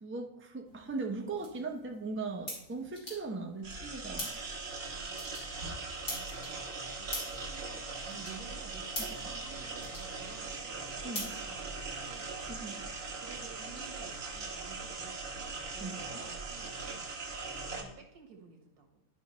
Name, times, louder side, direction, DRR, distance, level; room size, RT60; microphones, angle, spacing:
voice 1, 0.0-4.3 5.3-5.5 9.0-9.2 11.0-11.3 12.5-12.8 15.8-16.2, right 3 dB, 10° right, 2 dB, 0.6 m, -39 dB
sound 1, 0.7-12.2, left 1 dB, 85° left, 3.2 m, -46 dB
sound 2, 3.6-17.8, right 3 dB, 70° right, 1.6 m, -40 dB
voice 2, 5.0-12.4 13.2-17.1 17.6-19.1, right 5 dB, 85° right, 3 dB, 1.8 m, -53 dB
11.5 x 5.3 x 3.1 m, 0.92 s
omnidirectional pair, 1.5 m